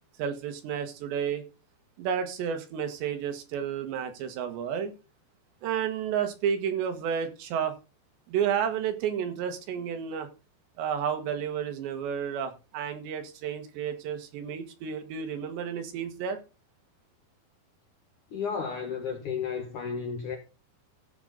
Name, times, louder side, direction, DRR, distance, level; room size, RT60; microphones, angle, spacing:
voice 1, 0.2-1.4 2.0-4.9 5.6-7.8 8.3-10.3 10.8-16.4, right 8 dB, 80° right, 3.7 m, -31 dB
voice 2, 18.3-20.4, left 6 dB, 70° left, 2.0 m, -33 dB
15.0 x 6.4 x 4.0 m
omnidirectional pair, 5.1 m